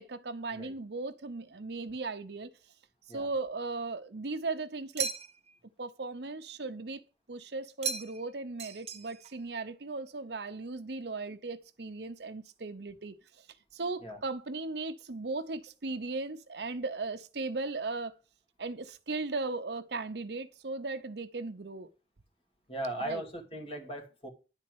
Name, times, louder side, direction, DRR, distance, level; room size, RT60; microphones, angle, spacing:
voice 1, 0.0-2.5 3.1-5.1 5.8-7.0 7.3-13.5 13.7-18.1 18.6-21.9 23.0-23.2, right 3 dB, 65° right, 0.8 m, -37 dB
sound 1, 5.0-5.6 7.8-8.3 8.6-9.3, right 7 dB, 35° right, 0.6 m, -36 dB
voice 2, 22.7-24.3, right 1 dB, 35° left, 2.2 m, -38 dB
10.5 x 4.2 x 7.9 m
head